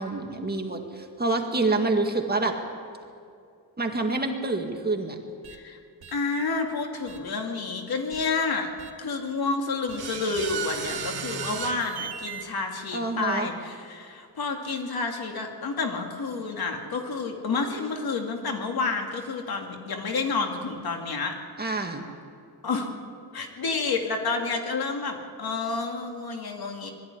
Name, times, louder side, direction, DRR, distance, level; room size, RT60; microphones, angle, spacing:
voice 1, 0.0-2.6 3.8-5.2 12.9-13.5 21.6-22.1, right 2 dB, 25° right, 3 dB, 2.0 m, -27 dB
sound 1, 5.4-5.6 6.0-6.1 7.1-7.2 8.1-8.2 8.8-8.9 9.9-12.4, right 6 dB, 70° right, 2.2 m, -35 dB
voice 2, 5.5-5.8 6.1-8.7 9.0-21.4 22.6-23.0 23.3-26.9, left 4 dB, 65° left, 3 dB, 2.5 m, -29 dB
21.0 x 14.0 x 9.7 m, 2.4 s
wide cardioid pair, 120°, 40 cm